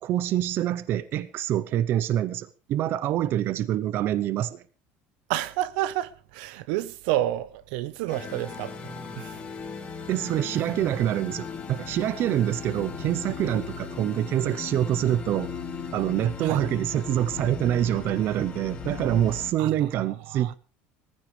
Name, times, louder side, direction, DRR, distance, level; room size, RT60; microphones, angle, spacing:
voice 1, 0.0-4.6 10.1-15.6 15.9-20.6, right 12 dB, 50° right, 0.7 m, -26 dB
voice 2, 5.3-9.4 16.4-16.6 19.6-19.7 20.1-20.5, right 14 dB, 85° right, 1.0 m, -30 dB
sound 1, 8.1-19.5, left 5 dB, 25° left, 3.1 m, -37 dB
19.0 x 15.0 x 3.3 m
cardioid pair, 145°, 5 cm